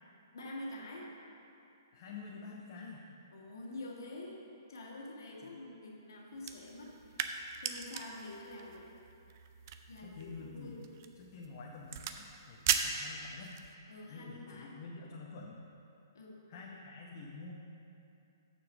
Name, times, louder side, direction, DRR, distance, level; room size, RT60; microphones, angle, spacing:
voice 1, 0.3-1.1 3.3-4.4 4.7-7.3 7.6-8.9 9.9-10.8 13.9-14.8 16.1-16.4, left 1 dB, 70° left, -2 dB, 1.6 m, -47 dB
voice 2, 1.9-3.1 5.4-5.5 10.0-10.7 11.2-13.6 14.0-15.6 16.5-17.5, left 4 dB, 45° left, -2 dB, 0.8 m, -48 dB
sound 1, 6.4-13.7, right 8 dB, 45° right, 0.5 m, -39 dB
7.0 x 5.9 x 6.2 m, 2.7 s
hypercardioid pair, 130°, 2 cm